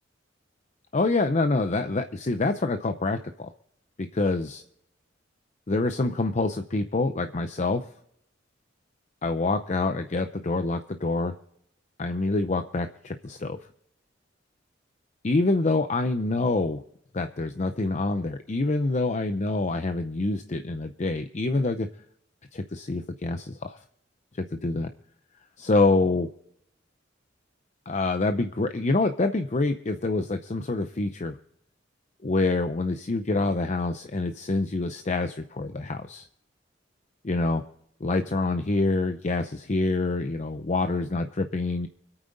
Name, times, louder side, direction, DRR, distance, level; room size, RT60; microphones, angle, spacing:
voice 1, 0.9-3.5 4.0-4.6 5.7-7.9 9.2-11.3 12.0-13.6 15.2-16.8 17.1-21.9 22.5-23.8 24.3-24.9 25.6-26.3 27.9-31.4 32.2-36.3 37.2-37.6 38.0-41.9, left 2 dB, 40° left, 8 dB, 0.6 m, -26 dB
25.0 x 8.9 x 3.9 m, 0.73 s
head